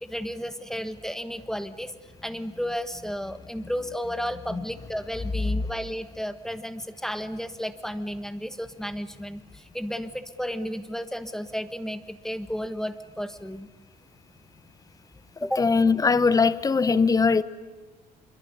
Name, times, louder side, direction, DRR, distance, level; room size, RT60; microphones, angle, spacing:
voice 1, 0.0-1.9 2.2-13.7 15.4-15.6, equal, 5° left, 10 dB, 1.5 m, -33 dB
voice 2, 15.6-17.4, left 4 dB, 20° left, 15 dB, 1.0 m, -20 dB
25.5 x 23.0 x 9.9 m, 1.2 s
cardioid pair, 110°, 17 cm